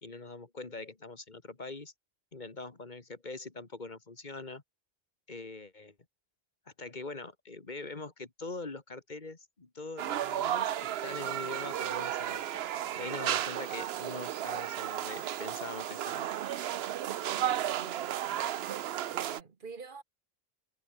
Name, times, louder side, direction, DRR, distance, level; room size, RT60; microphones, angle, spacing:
voice 1, 0.0-1.9 2.3-4.6 5.3-5.9 6.8-12.5 13.0-16.3, left 3 dB, 45° left, 2.0 m, -43 dB
sound 1, 10.0-19.4, right 11 dB, 80° right, 0.9 m, -34 dB
voice 2, 17.3-18.7 19.1-20.0, right 4 dB, 55° right, 1.3 m, -48 dB
omnidirectional pair, 1.1 m